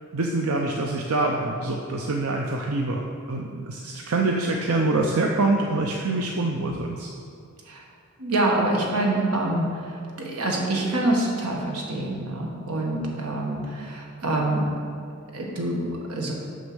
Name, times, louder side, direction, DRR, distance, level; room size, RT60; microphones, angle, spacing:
voice 1, 0.1-7.1, right 2 dB, 70° right, 1 dB, 0.6 m, -25 dB
voice 2, 8.2-10.0 10.2-14.7 15.3-16.3, right 2 dB, 90° right, -1 dB, 1.6 m, -26 dB
6.5 x 6.4 x 6.2 m, 2.4 s
head